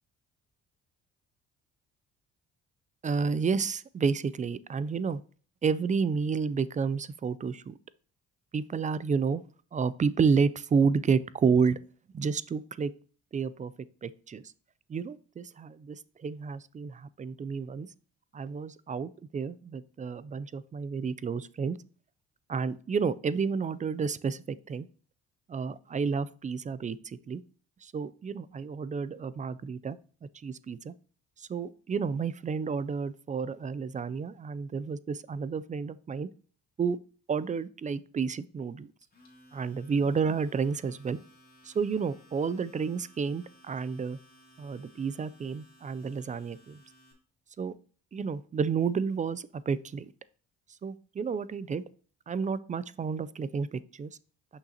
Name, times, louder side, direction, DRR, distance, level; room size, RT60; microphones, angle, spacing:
voice 1, 3.0-5.2 5.6-7.7 8.5-9.4 9.7-11.8 12.1-12.9 13.3-13.7 14.0-14.4 14.9-17.9 18.3-21.8 22.5-24.9 25.5-27.4 27.8-30.0 30.3-30.9 31.4-36.3 36.8-37.0 37.3-38.9 39.5-41.2 41.6-44.2 44.6-46.8 47.6-47.7 48.1-50.1 50.8-51.8 52.3-54.2, right 5 dB, 25° right, 17 dB, 0.3 m, -30 dB
Domestic sounds home sounds, 39.0-47.1, equal, 30° left, 2.3 m, -59 dB
6.5 x 5.7 x 2.8 m, 0.42 s
cardioid pair, 90°, 30 cm